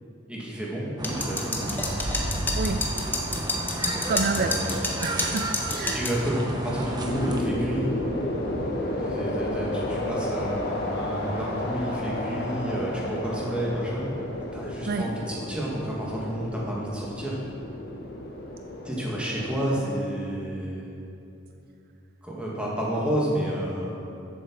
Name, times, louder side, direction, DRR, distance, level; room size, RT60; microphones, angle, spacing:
voice 1, 0.3-2.0 4.3-4.7 5.9-7.9 8.9-14.2 14.5-17.4 18.8-21.0 22.2-24.0, equal, 5° right, -5 dB, 2.2 m, -30 dB
sound 1, 1.0-6.2, left 2 dB, 10° left, 1.1 m, -29 dB
sound 2, 1.0-7.4, right 1 dB, 20° right, 1.1 m, -32 dB
voice 2, 2.6-2.9 4.1-4.6 5.0-6.0 14.9-15.1 19.6-19.8, right 4 dB, 50° right, 7 dB, 0.4 m, -29 dB
sound 3, 7.0-19.8, left 1 dB, 55° left, 1.6 m, -32 dB
13.5 x 7.9 x 4.8 m, 2.7 s
head